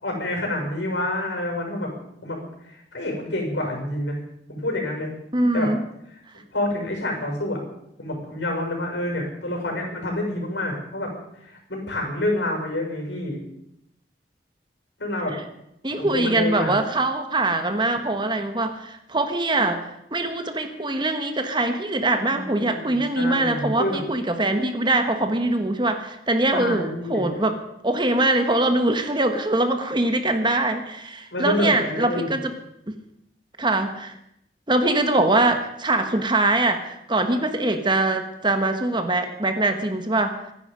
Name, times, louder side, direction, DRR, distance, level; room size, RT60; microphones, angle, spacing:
voice 1, 0.0-1.9 2.2-2.4 2.7-4.2 4.5-5.1 5.5-5.7 6.5-7.6 8.0-11.1 11.4-13.4 15.0-15.3 15.9-16.8 22.3-24.0 26.5-27.3 31.3-32.4, left 1 dB, 80° left, 1 dB, 6.2 m, -28 dB
voice 2, 5.3-5.8 15.3-15.4 15.8-27.5 27.8-32.5 32.9-33.0 33.6-34.2 34.7-40.4, right 2 dB, 25° right, 7 dB, 1.4 m, -23 dB
25.0 x 10.5 x 5.3 m, 0.77 s
head